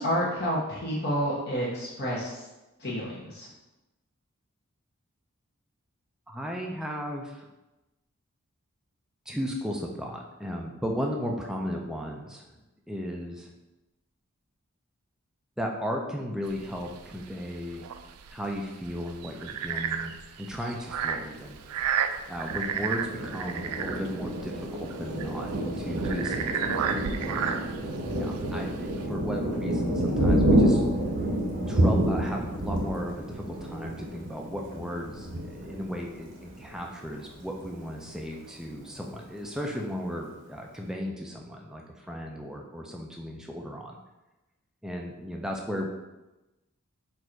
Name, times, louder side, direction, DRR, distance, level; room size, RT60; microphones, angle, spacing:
voice 1, 0.0-2.4 2.8-3.5, equal, 45° left, -7 dB, 0.9 m, -29 dB
voice 2, 6.3-7.4 9.3-12.5 12.9-13.5 15.6-17.9 18.3-20.1 20.4-21.6 22.3-26.8 27.2-27.6 28.1-30.8 31.7-44.0 44.8-45.9, equal, 5° right, 0 dB, 0.4 m, -35 dB
sound 1, 16.5-29.1, right 8 dB, 90° right, 0.3 m, -33 dB
Thunder, 22.5-36.8 37.3-37.4 37.7-38.3, right 1 dB, 55° right, 0.8 m, -28 dB
4.4 x 2.5 x 4.4 m, 1.0 s
head